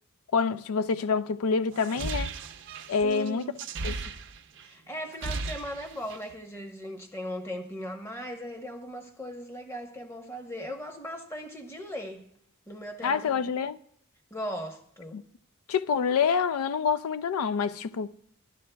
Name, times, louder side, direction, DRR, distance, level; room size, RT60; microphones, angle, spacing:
voice 1, 0.3-2.3 2.9-3.5 3.8-4.0 13.0-13.8 15.1-15.2 15.7-18.2, left 6 dB, 90° left, 0.4 m, -27 dB
sound 1, 1.7-4.7 5.0-6.3, right 3 dB, 55° right, 0.5 m, -36 dB
voice 2, 3.0-3.6 4.6-12.3 12.7-13.5 14.3-15.2, equal, 10° left, 0.8 m, -38 dB
13.5 x 11.0 x 2.2 m
head